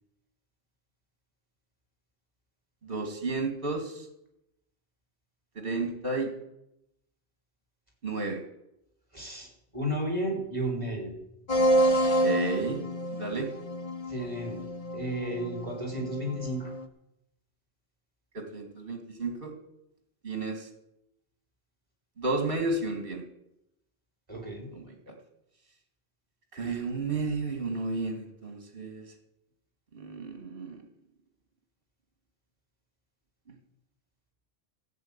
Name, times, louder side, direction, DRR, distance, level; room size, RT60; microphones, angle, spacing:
voice 1, 2.8-4.1 5.6-6.3 8.0-8.4 12.2-12.8 13.1-13.5 18.3-19.5 20.2-20.7 22.2-23.2 24.7-25.1 26.5-29.0 29.9-30.8, right 3 dB, 60° right, 4 dB, 2.5 m, -32 dB
voice 2, 9.1-9.5 9.7-11.1 14.1-14.6 14.9-16.7 24.3-24.7, right 1 dB, 30° right, 1 dB, 4.9 m, -32 dB
sound 1, 11.5-16.8, right 1 dB, 35° left, 1.0 m, -28 dB
14.0 x 7.9 x 8.9 m, 0.83 s
omnidirectional pair, 1.1 m